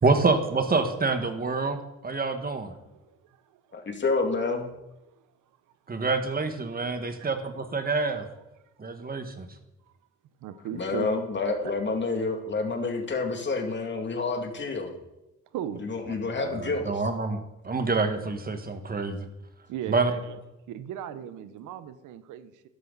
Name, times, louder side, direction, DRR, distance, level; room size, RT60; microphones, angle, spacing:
voice 1, 0.0-2.7 5.9-8.2 8.8-9.5 16.4-19.3 19.9-20.1, right 3 dB, 30° right, 7 dB, 1.7 m, -27 dB
voice 2, 3.0-3.9 5.0-5.1 7.2-7.3 10.4-11.1 11.6-11.7 15.5-16.2 19.7-20.4 20.7-22.7, right 10 dB, 85° right, 12 dB, 1.0 m, -38 dB
voice 3, 3.7-4.7 10.7-14.9 15.8-17.0, left 3 dB, 40° left, 4 dB, 2.5 m, -29 dB
13.0 x 11.0 x 4.1 m, 0.93 s
cardioid pair, 90°, 30 cm